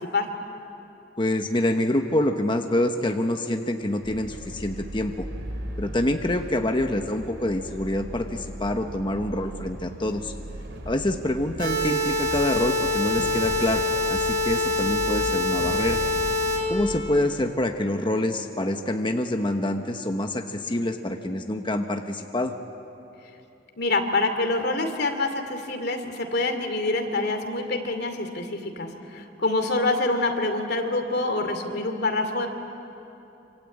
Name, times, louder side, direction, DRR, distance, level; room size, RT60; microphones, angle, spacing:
voice 1, 1.2-5.3 5.8-10.3 10.9-16.0 16.7-22.5, left 1 dB, 25° left, 5 dB, 1.1 m, -26 dB
sound 1, 4.0-17.0, right 1 dB, 80° right, 3.6 m, -38 dB
sound 2, 11.6-16.6, left 2 dB, 60° right, 6.1 m, -25 dB
voice 2, 23.8-32.5, left 2 dB, 60° left, 6 dB, 2.7 m, -26 dB
26.5 x 26.5 x 8.6 m, 2.9 s
head